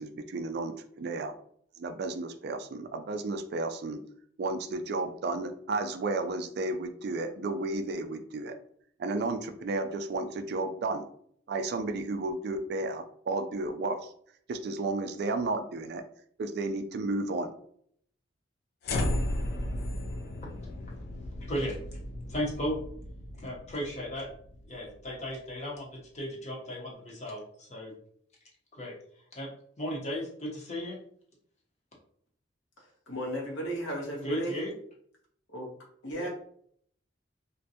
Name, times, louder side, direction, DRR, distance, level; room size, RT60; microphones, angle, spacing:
voice 1, 0.0-1.3 1.8-4.0 4.4-8.6 9.0-11.0 11.5-14.1 14.5-16.0 16.4-17.5, right 2 dB, 55° right, 8 dB, 0.3 m, -32 dB
sound 1, 18.8-25.1, left 1 dB, 55° left, 0.3 m, -35 dB
voice 2, 22.3-22.7 23.4-24.3 24.7-27.9 28.7-28.9 29.3-29.5 29.8-31.0 34.2-34.7, equal, 35° left, -3 dB, 0.8 m, -35 dB
voice 3, 32.8-34.6 35.5-35.7 36.0-36.3, right 1 dB, 80° left, -1 dB, 0.9 m, -35 dB
2.5 x 2.2 x 2.7 m, 0.63 s
head